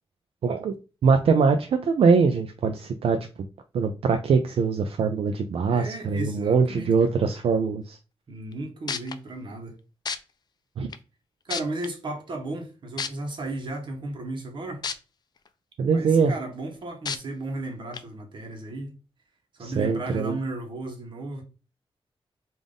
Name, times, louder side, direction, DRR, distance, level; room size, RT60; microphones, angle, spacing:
voice 1, 0.4-0.7 1.0-3.2 3.7-8.0 10.8-10.9 15.8-16.3 19.6-20.4, right 5 dB, 70° right, 0.4 m, -22 dB
voice 2, 5.7-7.1 8.3-9.7 11.4-14.8 15.9-18.9 19.6-21.4, right 2 dB, 55° right, 0.9 m, -34 dB
sound 1, 8.5-8.6 8.9-9.1 10.1-10.2 10.9-11.0 11.5-11.9 13.0-13.1 14.8-14.9 15.5-15.6 17.1-17.2 17.9-18.0, left 6 dB, 45° left, 0.3 m, -29 dB
3.5 x 2.5 x 3.7 m
wide cardioid pair, 165°, 10 cm